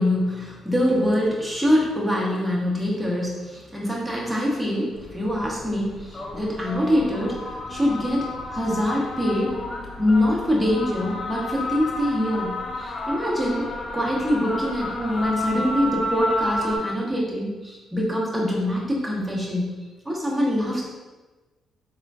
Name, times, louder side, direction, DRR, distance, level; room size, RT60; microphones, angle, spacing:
voice 1, 0.0-9.6 10.0-13.7 13.9-19.7 20.0-20.8, left 1 dB, 5° right, -4 dB, 1.0 m, -24 dB
sound 1, 4.9-16.8, left 1 dB, 35° left, 0.5 m, -32 dB
3.6 x 3.5 x 2.4 m, 1.2 s
cardioid pair, 90°, 0 cm